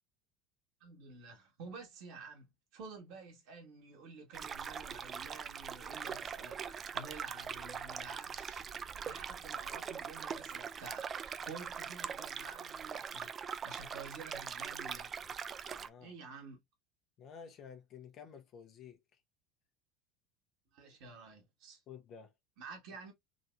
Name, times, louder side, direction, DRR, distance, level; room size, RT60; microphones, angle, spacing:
voice 1, 0.8-13.3 13.6-15.1 16.0-16.6 20.7-21.8 22.6-23.1, right 4 dB, 60° right, 1.7 m, -51 dB
sound 1, 4.3-15.9, right 7 dB, 35° right, 0.4 m, -42 dB
voice 2, 15.7-16.1 17.2-19.0 21.9-22.3, left 7 dB, 45° left, 1.0 m, -52 dB
4.0 x 2.8 x 2.5 m
hypercardioid pair, 75°, 0 cm